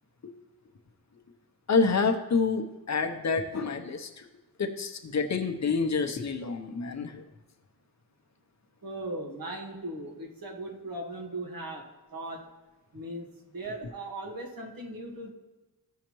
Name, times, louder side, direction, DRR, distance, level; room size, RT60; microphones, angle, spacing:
voice 1, 1.7-4.2 4.6-7.2, left 4 dB, 50° left, 5 dB, 0.8 m, -28 dB
voice 2, 8.8-12.5 12.9-15.3, right 1 dB, 65° right, 1 dB, 1.6 m, -38 dB
15.5 x 5.7 x 3.0 m, 1.1 s
wide cardioid pair, 155°, 37 cm